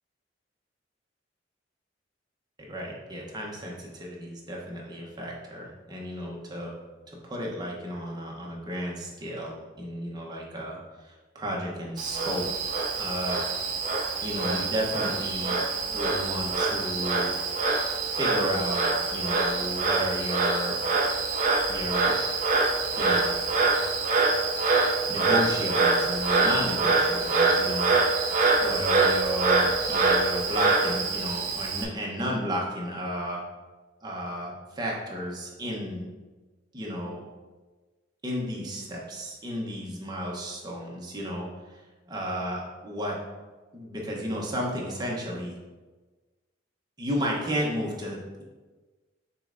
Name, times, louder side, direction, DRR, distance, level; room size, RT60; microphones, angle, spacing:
voice 1, 2.7-6.7 7.1-12.4 13.0-13.4 14.2-15.6 15.9-17.3 18.2-20.8 21.7-22.2 23.0-23.4 25.1-27.9 28.6-33.4 34.0-36.1 36.7-37.2 38.2-43.2 43.7-45.6 47.0-48.4, equal, 20° right, -3 dB, 0.8 m, -33 dB
Frog, 12.0-31.8, right 3 dB, 45° right, 0.5 m, -25 dB
6.6 x 3.2 x 2.5 m, 1.3 s
head